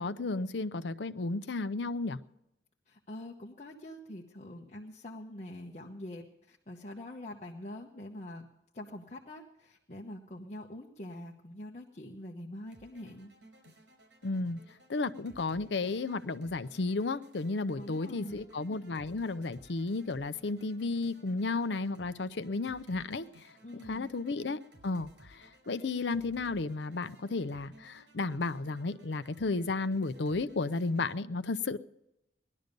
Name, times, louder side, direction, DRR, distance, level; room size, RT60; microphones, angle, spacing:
voice 1, 0.0-2.2 14.2-14.6 14.9-23.3 23.9-31.8, left 3 dB, 70° left, 12 dB, 0.6 m, -33 dB
voice 2, 2.9-8.5 8.7-13.3 17.8-18.4 23.6-24.1, left 1 dB, 40° left, -1 dB, 1.1 m, -45 dB
sound 1, 12.7-31.2, right 1 dB, 85° right, 5.0 m, -59 dB
18.5 x 12.0 x 5.3 m, 0.86 s
head